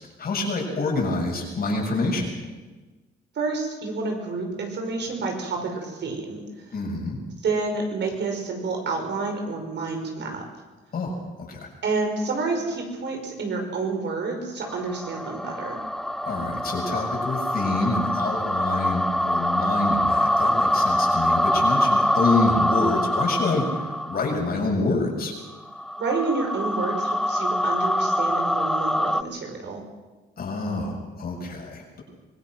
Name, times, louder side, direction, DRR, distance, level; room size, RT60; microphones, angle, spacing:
voice 1, 0.2-2.3 6.7-7.2 10.9-11.2 11.5-11.6 16.2-25.3 30.4-32.0, left 2 dB, 50° left, -1 dB, 7.3 m, -27 dB
voice 2, 3.4-6.4 7.4-10.4 11.8-15.8 26.0-29.9, right 3 dB, 60° right, 3 dB, 5.4 m, -29 dB
sound 1, 14.7-24.4 25.5-29.2, left 1 dB, ahead, 0.5 m, -24 dB
24.5 x 18.0 x 6.3 m, 1.3 s
cardioid pair, 90°, 20 cm